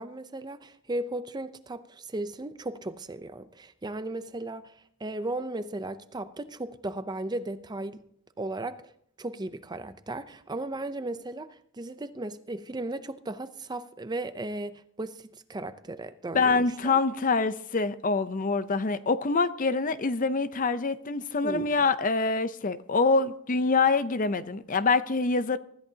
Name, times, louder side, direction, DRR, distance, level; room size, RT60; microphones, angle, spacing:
voice 1, 0.0-4.7 5.0-8.0 8.4-8.8 9.2-16.9 21.4-21.7, right 2 dB, 20° right, 0.5 m, -36 dB
voice 2, 16.3-25.6, left 4 dB, 40° left, 0.6 m, -25 dB
24.5 x 13.5 x 2.8 m
head